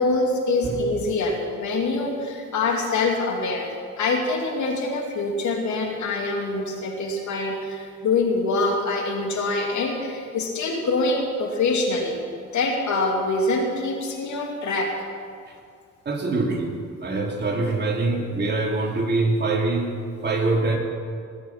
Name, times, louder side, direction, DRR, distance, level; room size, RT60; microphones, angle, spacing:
voice 1, 0.0-12.2 12.5-14.9, left 3 dB, 70° left, 1 dB, 2.6 m, -25 dB
voice 2, 16.0-16.7 17.0-19.9 20.2-20.8, right 3 dB, 35° right, 0 dB, 2.7 m, -24 dB
19.5 x 8.0 x 5.9 m, 2.2 s
cardioid pair, 90°, 30 cm